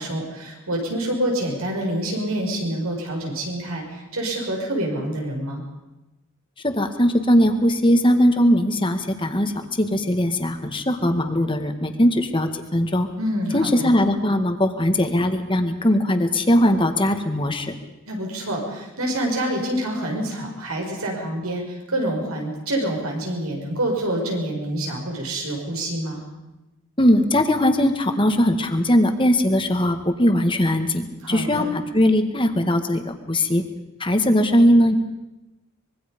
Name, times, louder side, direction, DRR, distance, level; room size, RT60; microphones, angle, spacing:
voice 1, 0.0-5.6 13.2-13.9 18.1-21.6 21.9-26.2 31.2-31.7, right 1 dB, 85° right, 0 dB, 6.9 m, -27 dB
voice 2, 6.6-9.5 9.8-13.1 13.5-17.7 27.0-33.6 34.0-34.9, equal, 25° left, 7 dB, 1.8 m, -20 dB
24.5 x 23.0 x 5.4 m, 0.99 s
head